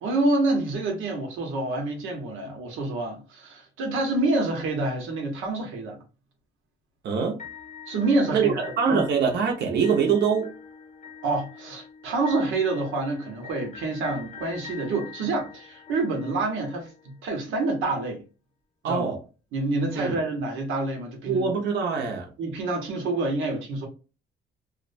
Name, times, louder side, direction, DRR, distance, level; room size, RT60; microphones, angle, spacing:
voice 1, 0.0-6.0 7.9-9.0 11.2-18.2 18.8-19.1 19.5-21.5 22.4-23.9, right 2 dB, 90° right, 0.8 m, -27 dB
voice 2, 7.0-7.4 8.3-10.5 18.8-19.2 20.0-20.2 21.3-22.3, right 6 dB, 60° right, 0.7 m, -24 dB
sound 1, 7.4-17.4, left 7 dB, 35° left, 0.7 m, -45 dB
2.4 x 2.1 x 2.4 m
cardioid pair, 90°, 20 cm